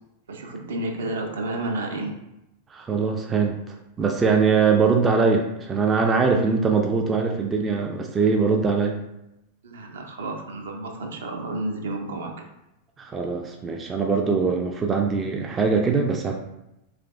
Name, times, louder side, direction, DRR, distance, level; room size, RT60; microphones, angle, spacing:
voice 1, 0.3-2.1 9.6-12.4, right 2 dB, 65° right, 2 dB, 0.6 m, -31 dB
voice 2, 2.7-9.0 13.0-16.3, right 5 dB, 20° right, 2 dB, 0.4 m, -22 dB
3.2 x 2.4 x 3.4 m, 0.88 s
figure-of-eight pair, 90°, 0 cm